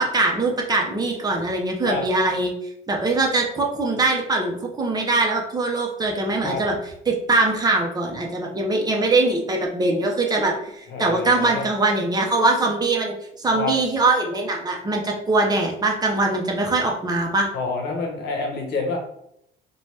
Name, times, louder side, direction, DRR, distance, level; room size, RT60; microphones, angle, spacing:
voice 1, 0.0-2.5 2.9-6.8 7.1-17.5, right 2 dB, 25° right, 0 dB, 0.6 m, -22 dB
voice 2, 10.9-11.7 13.5-13.7 17.5-19.0, left 4 dB, 75° left, 1 dB, 0.8 m, -27 dB
2.8 x 2.2 x 3.2 m, 0.74 s
cardioid pair, 110°, 17 cm